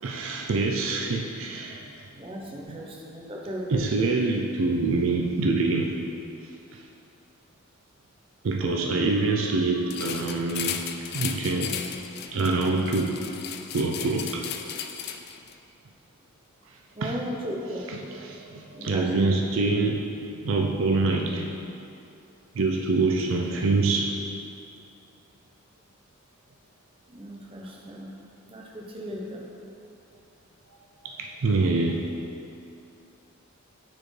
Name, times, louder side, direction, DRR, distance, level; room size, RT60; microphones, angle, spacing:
voice 1, 0.0-1.9 2.7-2.8 3.7-6.0 8.4-10.8 11.1-11.8 12.3-13.2 13.7-14.4 17.0-17.2 18.2-20.1 20.4-21.5 22.5-24.1 31.0-32.1, right 3 dB, 65° right, 1 dB, 0.4 m, -25 dB
voice 2, 2.2-4.2 16.9-17.9 18.7-19.4 27.1-28.1 28.5-29.5, equal, 25° right, -2 dB, 0.7 m, -36 dB
sound 1, 9.9-15.5, left 8 dB, 50° left, 0.3 m, -35 dB
9.3 x 4.3 x 3.2 m, 2.7 s
head